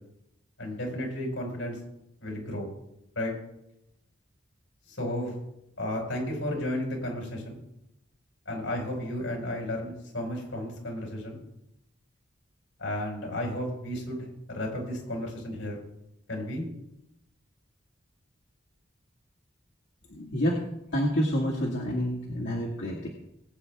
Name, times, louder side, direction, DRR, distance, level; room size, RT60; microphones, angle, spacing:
voice 1, 0.6-1.8 2.2-2.7 3.1-3.3 4.9-5.3 5.8-7.6 8.4-11.4 12.8-15.8 16.3-16.7, left 1 dB, 85° left, 0 dB, 5.1 m, -33 dB
voice 2, 20.1-20.6 20.9-23.1, equal, 65° left, -3 dB, 1.9 m, -28 dB
20.5 x 9.0 x 3.5 m, 0.83 s
head